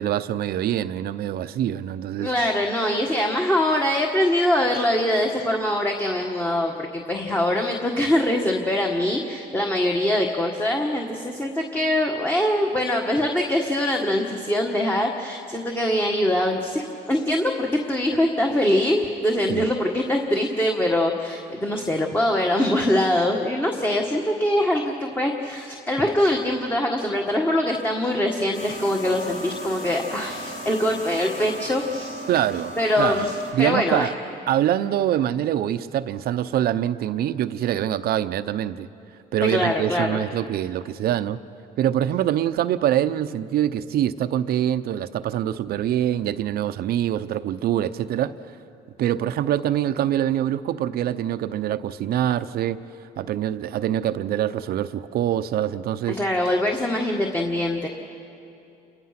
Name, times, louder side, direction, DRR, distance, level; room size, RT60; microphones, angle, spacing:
voice 1, 0.0-2.3 19.5-19.7 32.3-33.3 33.5-34.1 34.5-38.9 39.3-41.4 41.8-48.3 49.0-52.8 53.2-56.2, right 11 dB, 65° right, 12 dB, 0.8 m, -24 dB
voice 2, 2.2-32.2 32.8-34.1 39.4-40.2 56.2-57.9, left 1 dB, 10° left, 1 dB, 1.6 m, -23 dB
sound 1, 28.5-33.5, right 1 dB, 50° left, 7.1 m, -36 dB
28.5 x 22.0 x 5.9 m, 2.7 s
cardioid pair, 110°, 17 cm